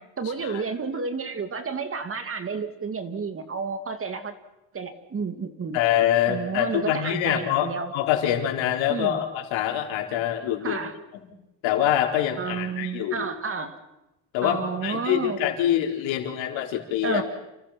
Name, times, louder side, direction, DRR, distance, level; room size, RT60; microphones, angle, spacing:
voice 1, 0.0-4.3 4.7-5.8 6.3-7.9 8.9-9.2 10.6-11.0 12.4-13.8 14.4-15.4 17.0-17.2, right 5 dB, 30° right, 8 dB, 2.4 m, -31 dB
voice 2, 5.7-10.8 11.1-11.3 11.6-13.3 14.3-17.2, left 11 dB, 90° left, 3 dB, 4.6 m, -25 dB
29.5 x 29.0 x 5.9 m, 0.95 s
cardioid pair, 145°, 44 cm